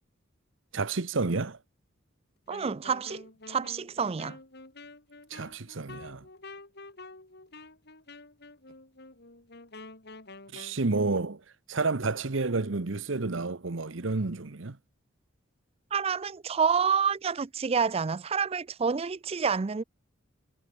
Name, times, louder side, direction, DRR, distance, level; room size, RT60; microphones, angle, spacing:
voice 1, 0.7-1.6 5.3-6.2 10.5-11.4 11.7-14.8, right 3 dB, 70° right, 1.0 m, -30 dB
Wind instrument woodwind instrument, 2.5-10.8, left 3 dB, 55° left, 3.9 m, -48 dB
voice 2, 2.5-4.4 15.9-19.8, right 6 dB, 30° right, 0.4 m, -28 dB
head